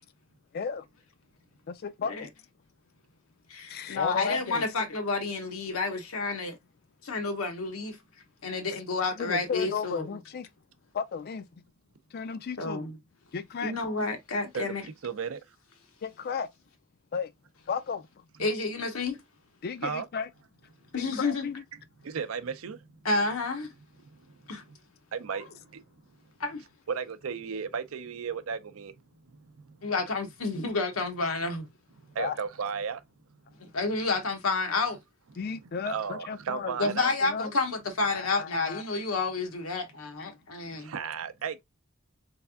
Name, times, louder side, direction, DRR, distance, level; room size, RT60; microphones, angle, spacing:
voice 1, 0.5-0.8 1.7-2.3 3.6-4.7 9.1-10.5 10.9-11.5 12.1-12.9 13.3-13.7 16.0-16.5 17.1-17.3 17.7-18.2 19.6-20.3 21.1-21.5 32.2-32.4 35.4-37.5 38.1-38.8 40.2-40.3, left 6 dB, 45° left, 0.4 m, -34 dB
voice 2, 3.5-6.6 7.0-8.0 8.4-10.1 12.6-13.0 13.6-14.8 18.4-19.2 20.9-21.5 23.0-23.7 24.5-24.6 25.3-25.4 26.4-26.6 29.8-31.7 33.6-35.0 36.8-40.9, left 3 dB, 90° left, 1.1 m, -30 dB
voice 3, 14.5-15.4 19.8-20.1 22.0-22.8 24.5-24.6 25.1-25.8 26.9-28.9 29.3-29.8 32.1-33.0 35.8-37.1 40.7-41.6, right 6 dB, 75° right, 0.5 m, -34 dB
3.4 x 3.3 x 2.2 m
head